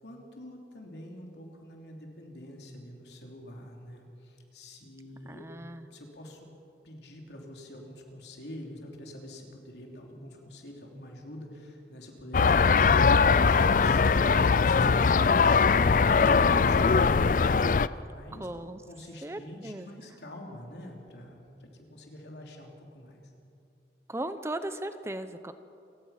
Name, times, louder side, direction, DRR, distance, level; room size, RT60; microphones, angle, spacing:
voice 1, 0.0-5.5 5.9-6.5 6.8-17.5 17.9-18.5 18.9-21.4 21.9-23.2, left 1 dB, 75° left, 1 dB, 3.3 m, -46 dB
voice 2, 5.3-5.9 18.3-18.8 19.2-19.9 24.1-25.5, right 1 dB, 15° right, 10 dB, 0.7 m, -37 dB
sound 1, 12.3-17.9, left 5 dB, 50° left, 0.4 m, -21 dB
28.0 x 16.0 x 5.8 m, 2.6 s
head